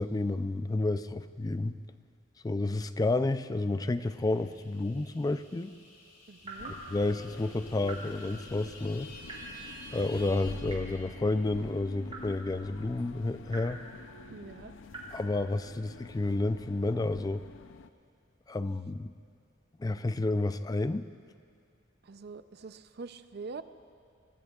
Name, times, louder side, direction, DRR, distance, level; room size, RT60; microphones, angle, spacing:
voice 1, 0.0-1.8 2.4-5.7 6.9-9.1 9.9-13.8 15.1-17.4 18.5-19.1 19.8-21.1, left 2 dB, 20° left, 12 dB, 0.4 m, -30 dB
sound 1, 3.5-11.5, left 1 dB, 50° left, 2.7 m, -52 dB
voice 2, 6.3-6.7 14.3-14.7 22.0-23.6, right 4 dB, 55° right, 12 dB, 0.5 m, -44 dB
sound 2, 6.4-6.8 7.8-8.1 9.2-9.6 10.6-11.1 12.1-12.3 13.5-13.8 14.9-15.2, right 2 dB, 30° right, 3.8 m, -44 dB
sound 3, 6.6-17.9, left 3 dB, 75° left, 0.5 m, -47 dB
26.0 x 19.0 x 2.4 m, 2.3 s
head